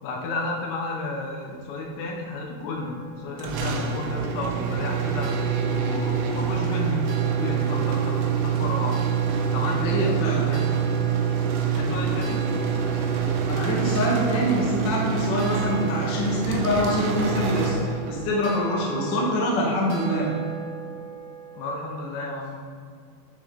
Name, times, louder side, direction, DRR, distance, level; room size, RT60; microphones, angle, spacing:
voice 1, 0.0-5.3 5.6-7.0 7.4-9.0 9.4-10.1 10.4-10.7 11.7-12.4 21.5-22.6, left 2 dB, 80° left, 0 dB, 3.8 m, -32 dB
sound 1, 2.7-22.1, right 4 dB, 60° right, 1.6 m, -41 dB
sound 2, 3.4-18.3, right 7 dB, 80° right, 3.5 m, -26 dB
voice 2, 9.6-10.5 13.4-20.3, equal, 50° left, -5 dB, 1.3 m, -25 dB
13.5 x 6.1 x 4.2 m, 2.2 s
omnidirectional pair, 5.7 m